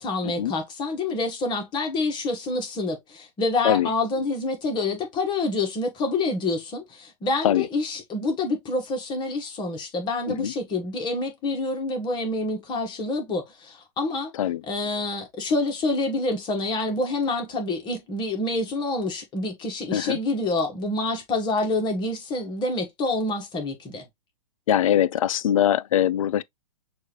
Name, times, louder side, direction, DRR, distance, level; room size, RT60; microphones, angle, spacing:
voice 1, 0.0-14.3 14.6-24.1, left 2 dB, 20° left, 1.4 m, -27 dB
voice 2, 24.7-26.4, left 11 dB, 55° left, 0.5 m, -22 dB
6.4 x 2.5 x 3.2 m
figure-of-eight pair, 115°, 20 cm